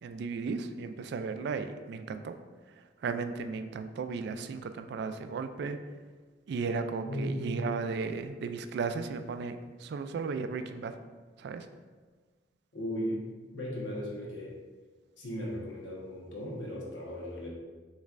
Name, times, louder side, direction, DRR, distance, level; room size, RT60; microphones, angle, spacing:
voice 1, 0.0-2.3 2.7-5.8 6.5-11.0 11.4-11.7, right 4 dB, 65° right, 9 dB, 0.3 m, -35 dB
voice 2, 7.0-7.5 12.7-13.2 13.5-14.5 15.2-17.5, equal, 80° left, -3 dB, 1.1 m, -36 dB
6.4 x 3.1 x 2.5 m, 1.4 s
head